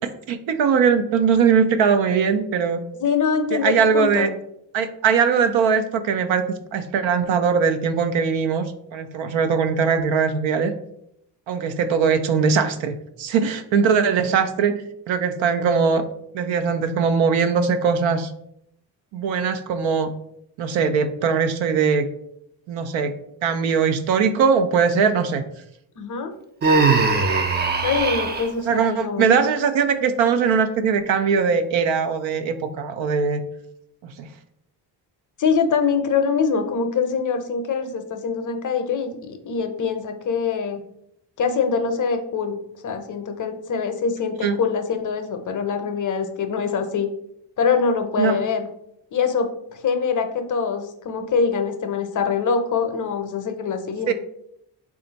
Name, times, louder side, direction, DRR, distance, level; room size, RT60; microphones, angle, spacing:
voice 1, 0.3-2.8 3.5-4.3 4.7-10.7 11.5-14.7 15.1-16.1 16.3-18.3 19.1-20.1 20.6-22.0 22.7-23.1 23.4-25.4 28.6-33.4 34.2-34.3 44.4-44.6 48.2-48.4 54.1-54.2, right 6 dB, 80° right, 9 dB, 0.6 m, -20 dB
voice 2, 2.9-4.3 26.0-26.3 27.8-29.3 35.4-40.8 41.4-42.6 42.8-47.1 47.6-48.7 49.1-54.1, left 5 dB, 45° left, 7 dB, 0.6 m, -24 dB
Human voice, 26.6-28.5, right 4 dB, 25° right, 0.4 m, -20 dB
3.4 x 2.5 x 3.9 m, 0.74 s
cardioid pair, 80°, 45 cm